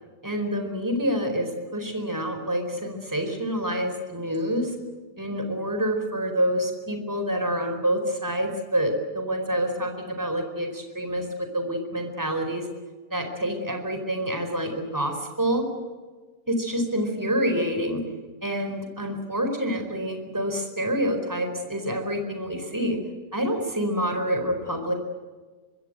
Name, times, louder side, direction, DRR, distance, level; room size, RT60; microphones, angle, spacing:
voice 1, 0.2-4.7 5.2-12.7 13.1-15.6 16.5-18.0 18.4-23.0 23.3-24.9, equal, 10° right, 5 dB, 4.6 m, -27 dB
25.0 x 25.0 x 8.0 m, 1.3 s
omnidirectional pair, 1.8 m